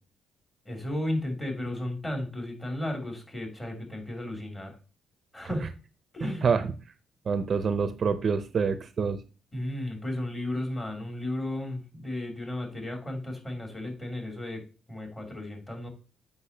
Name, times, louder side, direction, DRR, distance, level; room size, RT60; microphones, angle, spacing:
voice 1, 0.6-4.8 5.3-5.7 6.1-6.5 9.5-15.9, left 1 dB, 20° left, 3 dB, 2.7 m, -34 dB
voice 2, 7.3-9.2, right 5 dB, 45° right, 12 dB, 0.6 m, -26 dB
8.1 x 5.2 x 2.8 m, 0.35 s
cardioid pair, 90°, 0 cm